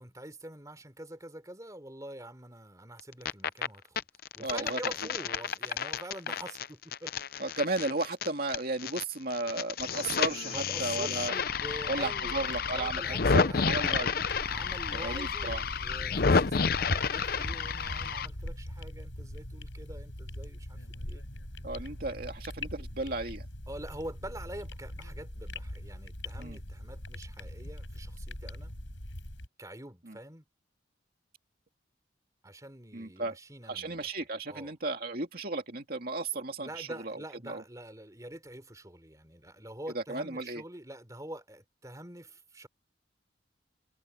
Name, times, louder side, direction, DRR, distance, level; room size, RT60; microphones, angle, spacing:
voice 1, 0.0-4.1 4.3-7.1 10.4-13.8 14.4-21.2 23.7-28.7 29.6-30.5 32.4-34.7 36.6-42.7, right 1 dB, 20° right, 3.4 m, -46 dB
sound 1, 3.0-3.7 4.0-9.0 9.3-18.3, left 5 dB, 50° left, 0.7 m, -30 dB
voice 2, 4.4-4.8 7.4-11.3 11.9-14.2 14.9-15.6 21.6-23.5 26.4-26.6 30.1-30.2 32.9-33.4 33.7-37.6 39.9-40.6, right 2 dB, 50° right, 2.4 m, -34 dB
sound 2, 12.2-29.5, left 1 dB, 90° left, 5.9 m, -41 dB
head